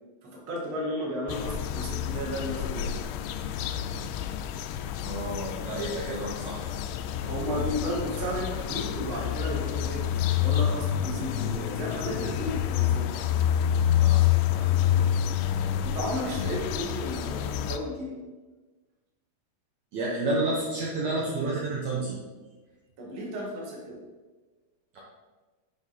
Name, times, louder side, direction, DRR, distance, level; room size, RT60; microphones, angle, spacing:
voice 1, 0.2-2.9 7.2-10.0 10.4-13.1 15.8-18.2 23.0-24.0, equal, 50° right, -3 dB, 1.5 m, -33 dB
sound 1, 1.3-17.8, left 10 dB, 85° left, 2.5 m, -28 dB
voice 2, 5.0-6.7 14.0-14.7 19.9-22.2 24.9-25.0, right 2 dB, 80° right, -4 dB, 1.6 m, -30 dB
8.4 x 5.2 x 4.1 m, 1.3 s
omnidirectional pair, 4.9 m